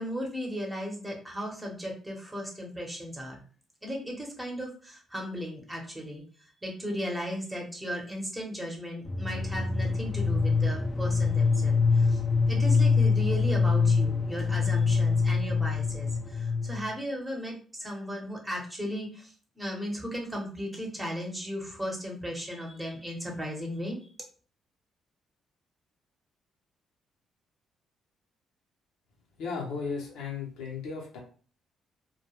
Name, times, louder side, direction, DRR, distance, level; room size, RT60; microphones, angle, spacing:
voice 1, 0.0-3.4 3.8-12.2 12.5-24.0, equal, 10° right, -1 dB, 0.9 m, -36 dB
sound 1, 9.0-16.9, left 4 dB, 35° left, 0.4 m, -25 dB
voice 2, 29.4-31.2, left 5 dB, 90° left, -1 dB, 0.7 m, -35 dB
2.2 x 2.1 x 3.0 m, 0.41 s
cardioid pair, 90°, 0 cm